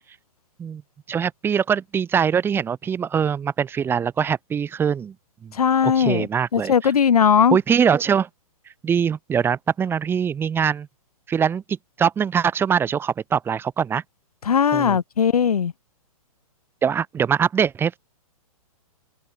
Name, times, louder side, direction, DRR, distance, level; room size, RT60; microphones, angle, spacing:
voice 1, 1.1-5.1 5.4-5.5 5.8-6.9 7.5-8.3 8.8-10.9 11.3-14.0 14.7-15.0 16.8-18.0, right 7 dB, 10° right, 1.6 m, -22 dB
voice 2, 5.6-7.6 14.5-15.7, left 7 dB, 90° left, 2.0 m, -19 dB
hypercardioid pair, 150°, 19 cm